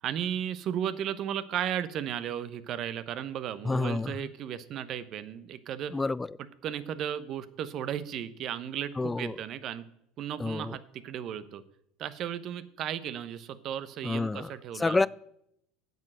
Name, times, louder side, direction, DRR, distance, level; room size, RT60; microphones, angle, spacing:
voice 1, 0.0-5.9 6.4-9.8 10.2-11.6 12.0-15.1, right 10 dB, 50° right, 0.9 m, -35 dB
voice 2, 3.7-4.1 5.9-6.3 9.0-9.4 10.4-10.8 14.0-15.1, left 3 dB, 15° left, 0.3 m, -29 dB
9.3 x 7.7 x 7.7 m
hypercardioid pair, 80°, 0 cm